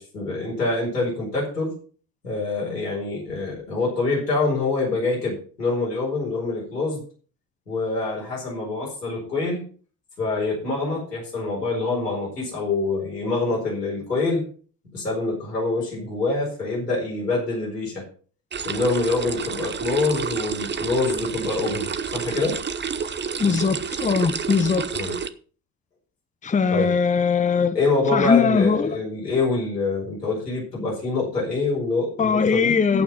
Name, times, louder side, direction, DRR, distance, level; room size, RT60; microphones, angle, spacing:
voice 1, 0.0-1.7 2.2-7.0 7.7-9.6 10.2-14.4 14.9-18.1 18.6-22.6 24.9-25.2 26.7-26.9 27.7-32.8, left 3 dB, 85° left, 4.5 m, -25 dB
sound 1, 18.5-25.3, right 6 dB, 25° right, 0.9 m, -29 dB
voice 2, 23.4-24.9 26.4-27.8 28.1-29.0 32.2-33.0, left 5 dB, 15° left, 0.9 m, -20 dB
15.5 x 6.0 x 5.4 m
figure-of-eight pair, 50°, 47 cm